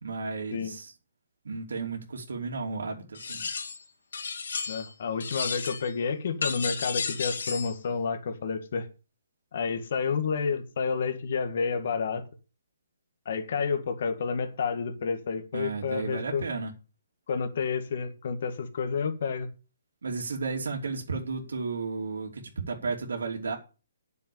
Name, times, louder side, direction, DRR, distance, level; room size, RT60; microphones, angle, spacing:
voice 1, 0.0-0.9 1.4-3.5 15.5-16.7 20.0-23.6, right 4 dB, 85° right, 2.9 m, -33 dB
sound 1, 3.1-3.8 4.1-4.9 5.2-5.9 6.4-7.7, left 5 dB, 65° left, 2.6 m, -33 dB
voice 2, 4.7-8.9 9.5-12.2 13.3-16.5 17.3-19.5, left 5 dB, 40° left, 1.9 m, -30 dB
10.0 x 7.0 x 6.9 m
hypercardioid pair, 175°, 0 cm